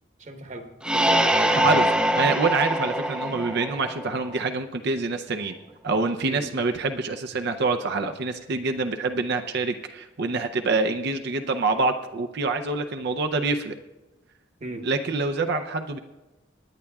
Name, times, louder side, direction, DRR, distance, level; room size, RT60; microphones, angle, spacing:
voice 1, 0.2-1.8 6.3-6.5 14.6-14.9, right 2 dB, 40° right, 5 dB, 1.1 m, -35 dB
sound 1, 0.8-4.4, right 1 dB, 5° right, 0.5 m, -23 dB
voice 2, 1.6-1.9 2.1-5.6 5.8-13.8 14.8-16.0, right 3 dB, 60° right, 7 dB, 0.6 m, -26 dB
25.0 x 9.7 x 2.3 m, 1.1 s
head